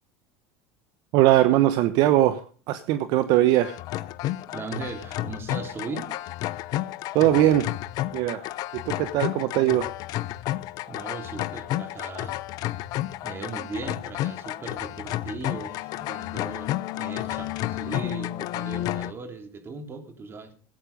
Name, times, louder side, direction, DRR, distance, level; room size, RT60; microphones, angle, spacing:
voice 1, 1.1-2.4 2.7-3.8 7.1-7.7 8.1-8.4 8.7-9.9, right 14 dB, 60° right, 11 dB, 1.0 m, -20 dB
sound 1, 3.6-19.1, left 15 dB, 55° left, 0.7 m, -31 dB
voice 2, 4.5-6.1 10.9-12.4 13.2-20.5, right 4 dB, 30° right, 6 dB, 3.2 m, -38 dB
16.5 x 8.7 x 5.2 m, 0.41 s
supercardioid pair, 100°, 8 cm